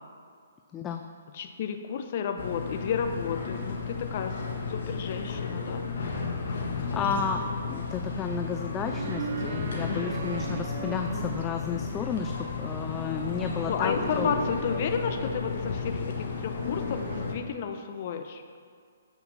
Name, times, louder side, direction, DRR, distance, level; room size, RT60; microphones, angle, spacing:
voice 1, 0.7-1.1 6.7-7.4 7.7-14.3, left 6 dB, 15° left, 5 dB, 0.4 m, -32 dB
voice 2, 1.3-4.4 4.7-5.8 9.9-10.2 13.6-18.4, left 7 dB, 45° left, 6 dB, 0.8 m, -32 dB
sound 1, 2.4-17.3, left 4 dB, 65° left, 1.5 m, -33 dB
sound 2, 8.5-17.2, right 5 dB, 55° right, 1.0 m, -40 dB
8.0 x 5.7 x 5.7 m, 2.2 s
hypercardioid pair, 145°, 0 cm